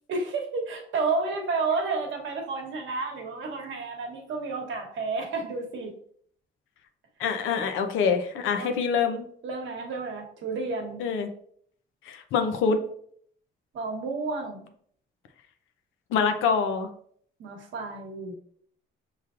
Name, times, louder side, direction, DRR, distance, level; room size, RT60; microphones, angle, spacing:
voice 1, 0.1-5.9 8.6-8.8 9.4-11.0 13.7-14.7 17.4-18.4, right 3 dB, 75° right, 2 dB, 1.1 m, -31 dB
voice 2, 7.2-9.2 11.0-11.3 12.1-12.8 16.1-16.9, left 6 dB, 85° left, 7 dB, 0.6 m, -25 dB
5.8 x 3.1 x 2.4 m, 0.62 s
cardioid pair, 90°, 20 cm